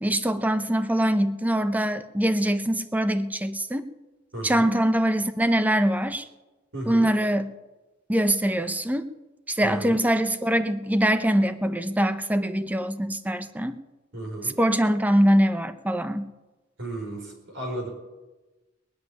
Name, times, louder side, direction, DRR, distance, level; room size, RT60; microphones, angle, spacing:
voice 1, 0.0-3.9 4.4-6.2 6.9-7.5 8.1-9.1 9.5-13.8 14.6-16.3, equal, 10° right, 10 dB, 0.7 m, -23 dB
voice 2, 4.3-4.7 6.7-7.1 9.6-10.0 14.1-14.6 16.8-17.9, right 1 dB, 75° right, 1 dB, 4.7 m, -34 dB
19.0 x 7.5 x 9.7 m, 1.2 s
head